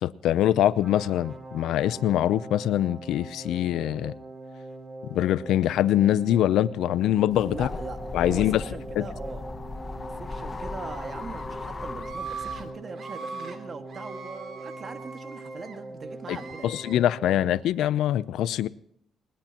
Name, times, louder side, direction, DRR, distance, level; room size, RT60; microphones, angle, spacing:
voice 1, 0.0-4.1 5.0-7.7 8.1-8.6 9.0-9.1 16.3-16.4 16.6-18.7, left 12 dB, 85° left, 0.6 m, -24 dB
sound 1, 0.8-17.6, right 2 dB, 20° right, 2.6 m, -42 dB
sound 2, 7.3-12.7, left 3 dB, 30° left, 1.0 m, -37 dB
voice 2, 7.5-9.4 10.2-16.8, right 4 dB, 45° right, 2.0 m, -41 dB
Screaming, 10.9-11.4 12.0-12.6 12.9-13.6 13.9-15.8 16.2-17.0, right 5 dB, 60° right, 2.9 m, -41 dB
21.0 x 19.5 x 3.0 m
cardioid pair, 90°, 0 cm